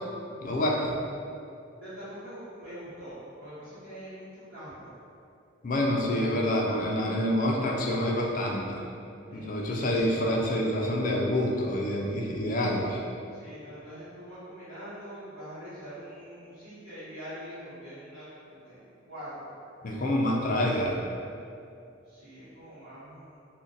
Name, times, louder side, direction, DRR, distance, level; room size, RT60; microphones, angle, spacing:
voice 1, 0.4-0.9 5.6-8.8 9.3-13.0 19.8-20.9, left 1 dB, 40° left, -1 dB, 0.3 m, -27 dB
voice 2, 1.8-4.9 9.3-10.1 13.3-19.5 20.2-20.9 22.0-23.4, equal, 65° right, -17 dB, 1.1 m, -44 dB
2.5 x 2.1 x 3.8 m, 2.6 s
head